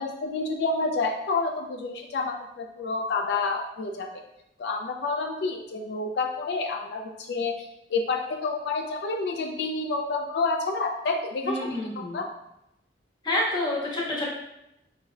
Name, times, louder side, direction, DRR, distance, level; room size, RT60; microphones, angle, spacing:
voice 1, 0.0-4.2 4.6-12.3, left 3 dB, 65° left, 3 dB, 0.3 m, -29 dB
voice 2, 11.4-12.2 13.2-14.3, left 1 dB, 25° left, -5 dB, 0.8 m, -28 dB
5.3 x 2.0 x 2.4 m, 0.87 s
head